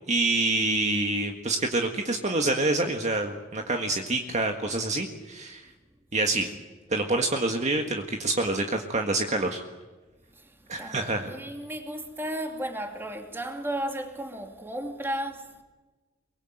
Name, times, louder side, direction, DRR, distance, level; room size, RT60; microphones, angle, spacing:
voice 1, 0.1-5.7 6.1-6.5 6.9-9.6 10.7-11.3, right 2 dB, 35° right, 1.7 m, -27 dB
voice 2, 10.3-15.6, right 1 dB, 10° right, 2.8 m, -34 dB
24.0 x 23.5 x 7.9 m
head